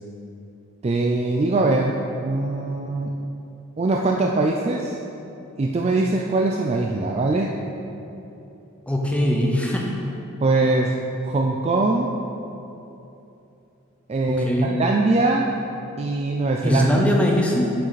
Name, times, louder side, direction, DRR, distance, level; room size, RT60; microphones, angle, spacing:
voice 1, 0.8-3.2 3.8-5.0 5.6-7.6 10.4-11.0 11.2-12.1 14.1-15.5 16.0-17.0, right 2 dB, 30° right, 0 dB, 0.3 m, -22 dB
voice 2, 8.9-9.9 14.3-14.8 16.6-17.7, equal, 5° left, -1 dB, 0.8 m, -21 dB
7.6 x 6.5 x 4.1 m, 2.9 s
head